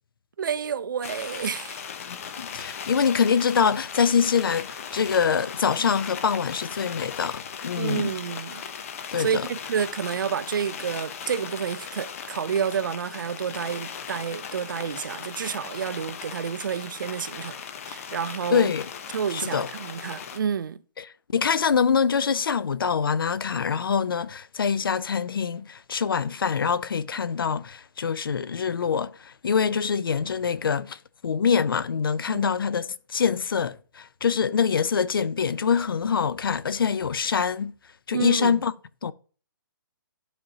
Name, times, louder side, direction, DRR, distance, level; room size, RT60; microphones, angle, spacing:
voice 1, 0.4-1.8 7.7-8.6 9.2-17.6 17.9-18.7 19.1-20.8 32.3-32.5 38.1-38.6, right 7 dB, 70° right, 0.6 m, -29 dB
sound 1, 1.0-20.4, left 7 dB, 40° left, 0.8 m, -38 dB
voice 2, 2.1-8.1 9.1-9.5 18.5-18.9 19.3-19.7 21.0-37.7 38.1-38.7 39.0-39.1, left 6 dB, 90° left, 0.5 m, -25 dB
12.0 x 5.1 x 2.9 m
hypercardioid pair, 160°, 11 cm